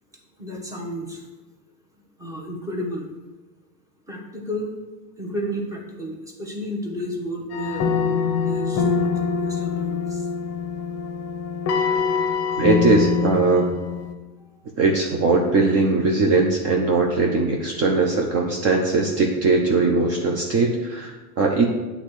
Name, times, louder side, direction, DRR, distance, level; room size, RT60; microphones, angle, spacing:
voice 1, 0.4-1.2 2.2-3.0 4.1-4.8 5.2-7.9 8.3-9.1 9.5-10.3, equal, 5° right, 0 dB, 1.2 m, -32 dB
sound 1, 7.5-14.1, left 6 dB, 30° left, 1.0 m, -24 dB
voice 2, 12.6-13.7 14.8-21.6, right 3 dB, 30° right, 1 dB, 0.9 m, -20 dB
8.3 x 3.9 x 6.4 m, 1.2 s
supercardioid pair, 125°, 47 cm